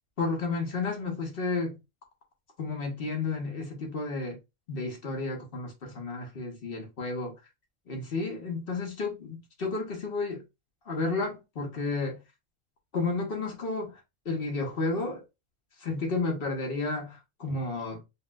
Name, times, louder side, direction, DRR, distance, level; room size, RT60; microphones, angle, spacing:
voice 1, 0.2-1.8 2.6-4.4 4.7-7.3 7.9-10.4 10.9-12.2 12.9-14.0 14.2-15.2 15.8-18.0, left 3 dB, 50° left, 1.0 m, -32 dB
4.3 x 2.0 x 2.2 m
omnidirectional pair, 1.4 m